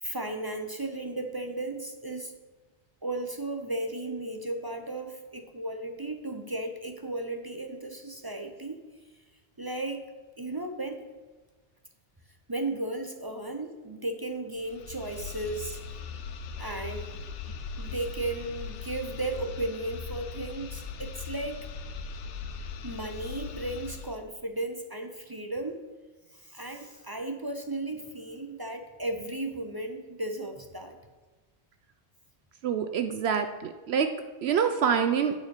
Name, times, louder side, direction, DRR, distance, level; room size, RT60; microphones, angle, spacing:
voice 1, 0.0-2.3 3.0-8.8 9.6-10.0 10.4-11.1 12.5-15.8 16.6-17.2 17.8-21.7 22.8-25.9 26.3-31.0, right 2 dB, 30° right, 4 dB, 0.4 m, -35 dB
sound 1, 14.6-24.2, left 6 dB, 85° left, 1.0 m, -39 dB
voice 2, 32.6-34.1 34.4-35.3, right 7 dB, 70° right, 7 dB, 0.8 m, -26 dB
9.1 x 4.2 x 6.5 m, 1.3 s
omnidirectional pair, 1.2 m